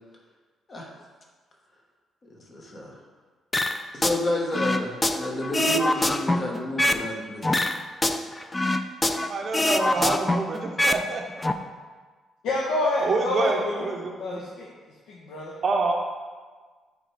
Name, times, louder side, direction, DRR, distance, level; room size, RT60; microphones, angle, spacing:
voice 1, 2.3-3.0 3.9-7.6, equal, 40° left, -1 dB, 1.3 m, -30 dB
sound 1, 3.5-4.2 4.5-7.1 7.4-9.3 9.5-11.0 11.3-11.5, left 1 dB, 15° left, 0.3 m, -24 dB
voice 2, 9.2-11.2 13.0-14.4 15.6-15.9, right 3 dB, 45° right, 2 dB, 0.6 m, -27 dB
voice 3, 12.4-14.7 15.1-15.5, left 1 dB, 80° left, -4 dB, 0.9 m, -28 dB
8.9 x 3.3 x 3.4 m, 1.4 s
cardioid pair, 90°, 0 cm